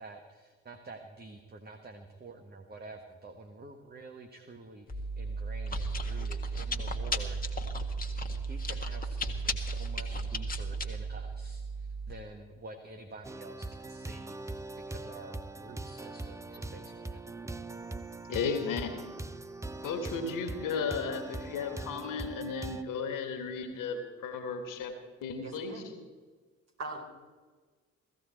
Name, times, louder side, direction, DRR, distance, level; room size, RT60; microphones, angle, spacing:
voice 1, 0.0-17.4, right 2 dB, 25° right, 5 dB, 1.5 m, -49 dB
Chewing mastication, 4.9-12.1, right 2 dB, 20° left, 1.7 m, -34 dB
sound 1, 13.2-22.8, right 2 dB, 10° right, 0.7 m, -41 dB
voice 2, 18.3-19.0 19.8-24.9 25.2-25.8, left 5 dB, 55° left, 7 dB, 2.1 m, -34 dB
voice 3, 25.4-25.9 26.8-27.0, right 3 dB, 40° right, -1 dB, 4.6 m, -40 dB
16.5 x 15.0 x 4.5 m, 1.4 s
figure-of-eight pair, 50°, 38 cm